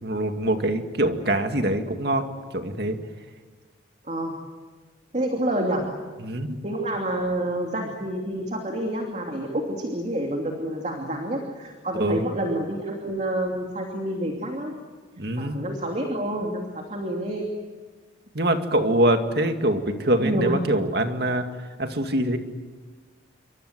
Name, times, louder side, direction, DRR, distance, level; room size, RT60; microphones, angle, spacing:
voice 1, 0.0-2.3 2.5-3.0 6.2-6.6 11.9-12.2 15.2-15.6 18.3-21.4 21.8-22.4, right 1 dB, 55° right, 6 dB, 2.2 m, -24 dB
voice 2, 5.1-5.9 6.6-14.8 15.4-17.4 20.2-20.6, right 1 dB, 35° right, 2 dB, 2.8 m, -28 dB
28.5 x 24.5 x 8.1 m, 1.3 s
head